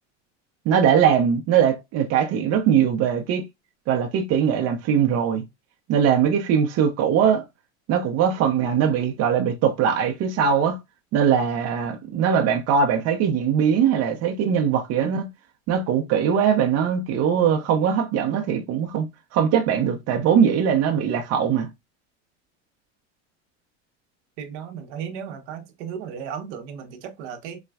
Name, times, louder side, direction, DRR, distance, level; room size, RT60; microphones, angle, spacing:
voice 1, 0.7-3.4 3.9-5.4 5.9-7.4 7.9-10.8 11.1-15.3 15.7-19.1 19.3-21.7, right 8 dB, 45° right, 0.7 m, -21 dB
voice 2, 24.4-27.6, right 7 dB, 70° right, 0.9 m, -35 dB
4.1 x 2.3 x 2.3 m
supercardioid pair, 120°, 36 cm